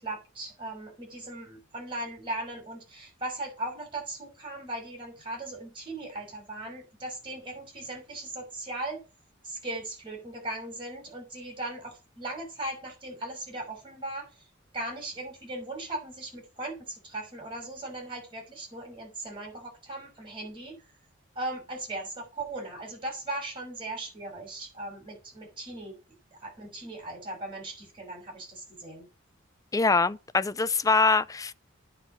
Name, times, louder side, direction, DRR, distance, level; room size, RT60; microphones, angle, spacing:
voice 1, 0.0-9.0 9.4-14.3 14.7-20.7 21.3-26.0 26.3-29.1, right 2 dB, 25° right, 6.1 m, -38 dB
voice 2, 29.7-31.5, left 4 dB, 15° left, 0.4 m, -24 dB
9.6 x 4.9 x 7.0 m
head